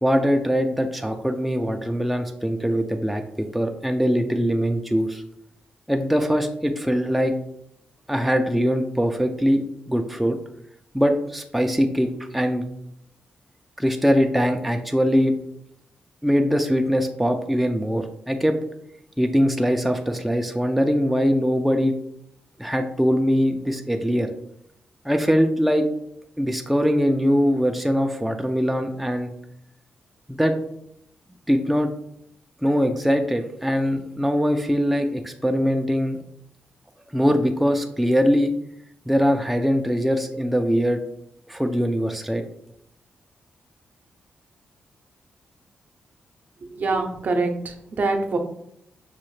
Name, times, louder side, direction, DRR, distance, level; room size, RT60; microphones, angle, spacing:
voice 1, 0.0-5.2 5.9-7.3 8.1-10.4 10.9-12.7 13.8-15.3 16.2-18.6 19.2-21.9 22.6-24.3 25.0-25.9 26.4-29.3 30.3-30.6 31.5-31.9 32.6-36.2 37.1-38.5 39.1-41.0 41.5-42.4, equal, ahead, 4 dB, 0.3 m, -22 dB
voice 2, 46.7-48.4, right 3 dB, 55° right, 4 dB, 0.6 m, -24 dB
5.6 x 2.1 x 3.1 m, 0.74 s
cardioid pair, 95°, 4 cm